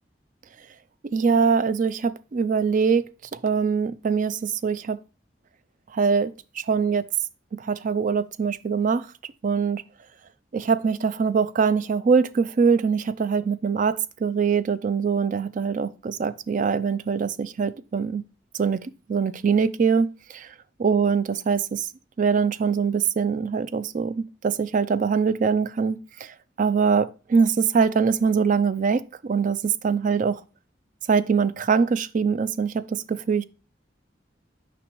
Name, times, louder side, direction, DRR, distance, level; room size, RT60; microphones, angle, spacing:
voice 1, 1.1-5.0 5.9-6.3 6.6-7.0 7.6-9.1 9.4-9.8 10.5-18.2 18.6-20.5 20.8-21.9 22.2-30.4 31.1-33.4, right 5 dB, 45° right, 0.4 m, -23 dB
6.5 x 5.1 x 3.0 m
head